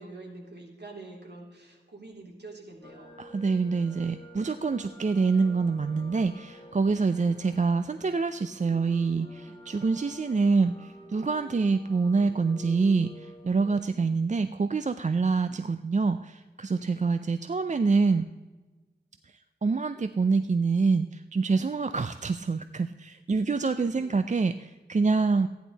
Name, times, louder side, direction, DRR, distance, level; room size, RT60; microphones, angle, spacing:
voice 1, 0.0-3.2 9.5-9.6 16.8-17.0 23.8-24.2 25.0-25.3, right 2 dB, 65° right, -1 dB, 2.9 m, -47 dB
sound 1, 2.8-13.8, equal, 25° left, 1.5 m, -49 dB
voice 2, 3.2-18.2 19.6-25.5, right 4 dB, 40° right, 9 dB, 0.4 m, -26 dB
14.5 x 10.5 x 4.0 m, 1.2 s
wide cardioid pair, 75°, 19 cm